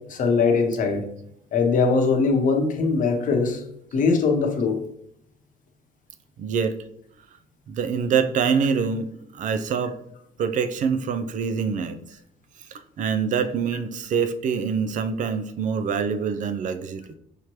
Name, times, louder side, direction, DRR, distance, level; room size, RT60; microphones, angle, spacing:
voice 1, 0.1-1.0 1.5-3.6 3.9-4.8, left 4 dB, 50° left, 3 dB, 0.9 m, -21 dB
voice 2, 6.4-6.8 7.7-10.0 10.4-12.0 13.0-17.2, right 6 dB, 50° right, 10 dB, 0.4 m, -25 dB
5.0 x 3.0 x 3.0 m, 0.72 s
cardioid pair, 110°, 17 cm